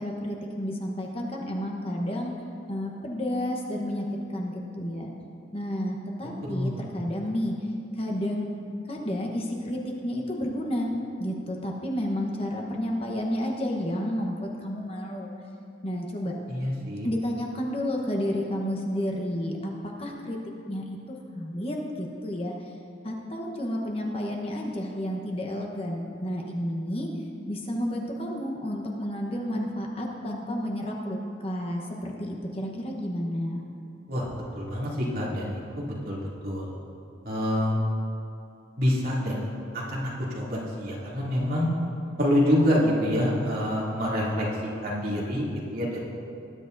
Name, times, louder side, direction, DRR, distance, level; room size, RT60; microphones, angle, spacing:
voice 1, 0.0-2.3 2.7-5.1 5.5-7.6 8.0-8.5 8.9-10.9 11.2-15.3 15.8-16.3 17.0-20.4 20.7-22.5 23.0-27.1 27.5-33.6, equal, 30° left, 0 dB, 1.1 m, -31 dB
voice 2, 6.5-6.8 16.5-17.1 34.1-34.3 34.5-36.2 36.4-36.7 37.2-37.8 38.8-41.7 42.2-44.5 44.8-46.1, equal, 50° right, -7 dB, 2.9 m, -27 dB
20.0 x 10.5 x 2.7 m, 2.6 s
head